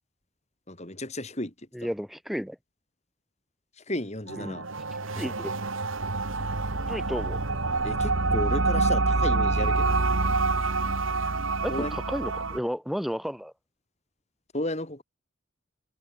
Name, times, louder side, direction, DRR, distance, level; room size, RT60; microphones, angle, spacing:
voice 1, 0.7-1.5 3.9-4.7 5.2-5.3 7.8-10.1 11.7-12.0 14.5-15.0, left 1 dB, 35° left, 3.6 m, -33 dB
voice 2, 1.7-2.6 4.4-4.6 5.1-5.6 6.9-7.4 11.6-13.5, equal, ahead, 7.1 m, -32 dB
sound 1, 4.3-12.6, right 3 dB, 80° right, 2.1 m, -26 dB
head